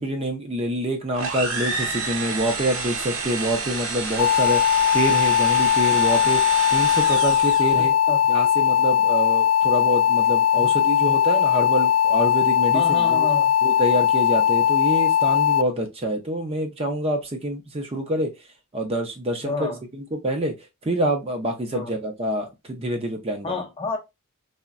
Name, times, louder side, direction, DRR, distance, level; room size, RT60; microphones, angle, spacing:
voice 1, 0.0-4.6 4.9-6.4 6.7-7.9 8.3-13.3 13.6-18.3 18.7-20.5 20.8-23.6, right 1 dB, 25° right, 0.5 m, -26 dB
sound 1, 1.1-7.8, right 4 dB, 65° right, 0.7 m, -29 dB
sound 2, 4.2-15.6, left 9 dB, 80° left, 0.3 m, -19 dB
voice 2, 7.7-8.2 10.5-10.7 11.0-11.2 12.7-13.5 19.4-19.8 21.7-22.0 23.4-24.0, left 3 dB, 25° left, 0.5 m, -30 dB
3.6 x 2.1 x 2.4 m
head